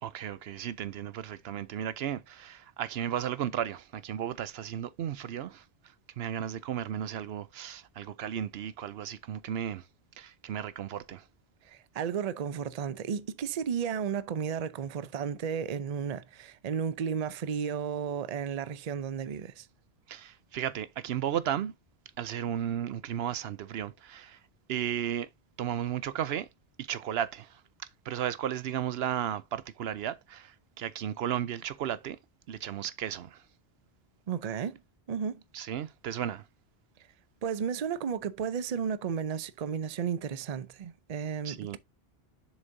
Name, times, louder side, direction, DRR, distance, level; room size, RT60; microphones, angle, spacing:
voice 1, 0.0-5.6 6.2-9.9 10.2-11.3 20.1-21.7 22.2-24.4 24.7-25.3 25.6-26.5 26.8-27.6 28.0-32.2 32.5-33.4 35.5-36.5 41.4-41.8, right 10 dB, 80° right, 0.8 m, -34 dB
voice 2, 11.6-19.7 34.3-34.8 35.1-35.4 37.4-41.8, right 7 dB, 45° right, 0.6 m, -33 dB
7.2 x 6.5 x 2.6 m
omnidirectional pair, 1.1 m